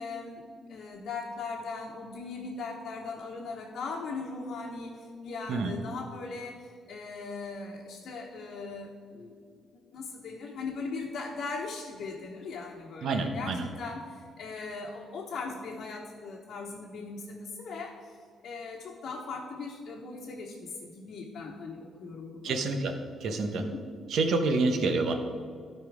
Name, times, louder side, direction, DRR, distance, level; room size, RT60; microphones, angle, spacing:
voice 1, 0.0-9.4 9.9-18.2 18.4-22.6 23.4-23.8, left 4 dB, 65° left, -2 dB, 1.1 m, -39 dB
voice 2, 13.0-13.7 22.4-22.9 23.2-23.6 24.1-25.1, right 3 dB, 70° right, 6 dB, 1.0 m, -27 dB
12.5 x 4.6 x 4.8 m, 2.1 s
cardioid pair, 90°, 0 cm